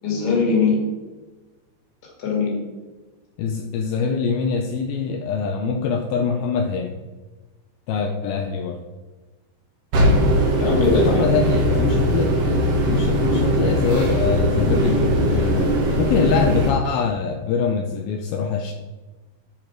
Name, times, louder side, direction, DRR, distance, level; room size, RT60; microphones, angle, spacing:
voice 1, 0.0-0.8 2.2-2.5 10.6-11.2, left 4 dB, 30° left, -2 dB, 2.0 m, -20 dB
voice 2, 3.4-7.0 7.9-8.8 10.9-12.4 12.9-18.7, left 5 dB, 85° left, 4 dB, 2.1 m, -24 dB
sound 1, 9.9-16.7, equal, 75° right, 1.4 m, -20 dB
12.5 x 4.9 x 4.6 m, 1.2 s
omnidirectional pair, 5.2 m